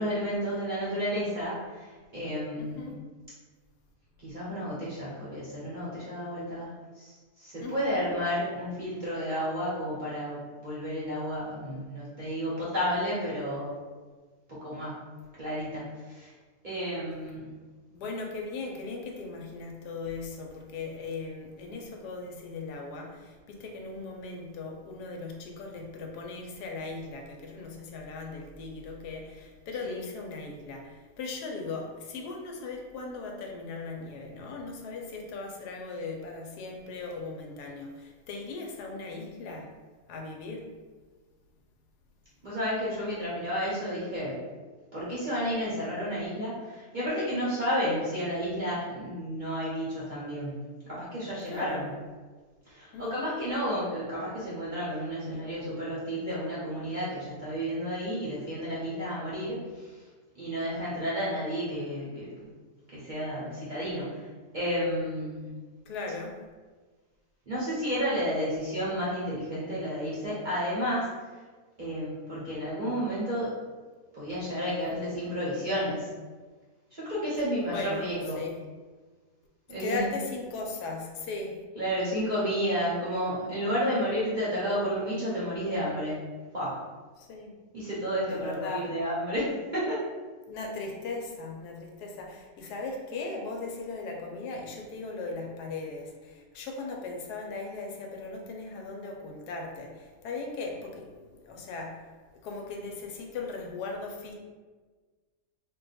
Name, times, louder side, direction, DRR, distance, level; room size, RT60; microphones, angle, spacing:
voice 1, 0.0-2.9 4.2-6.7 7.0-13.7 14.5-14.9 15.4-16.3 16.6-17.5 29.8-30.0 42.4-44.4 44.9-50.6 50.8-51.9 52.7-60.0 60.3-62.3 62.9-64.2 64.5-65.5 67.5-71.1 71.8-73.5 74.1-76.1 76.9-78.4 79.7-80.1 81.8-86.2 86.5-86.8 87.7-90.0, equal, 40° right, -9 dB, 0.7 m, -31 dB
voice 2, 2.6-3.0 7.6-8.2 17.9-39.7 40.1-40.7 51.5-51.8 52.9-53.3 65.9-66.4 77.6-78.1 78.3-78.5 79.8-81.6 87.2-87.5 88.3-88.9 90.5-102.0 102.4-104.3, left 3 dB, 85° left, 1 dB, 1.1 m, -38 dB
2.6 x 2.2 x 3.9 m, 1.4 s
omnidirectional pair, 1.7 m